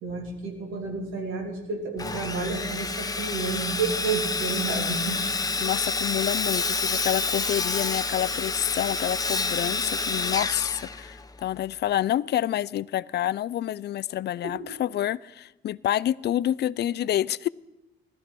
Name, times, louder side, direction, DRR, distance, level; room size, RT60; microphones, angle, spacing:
voice 1, 0.0-5.2 14.4-14.7, right 4 dB, 90° right, 3.2 m, -31 dB
Sawing, 2.0-11.4, left 3 dB, 20° left, 0.8 m, -28 dB
voice 2, 5.6-17.5, left 12 dB, 55° left, 0.4 m, -28 dB
16.0 x 13.0 x 6.1 m
cardioid pair, 90°, 20 cm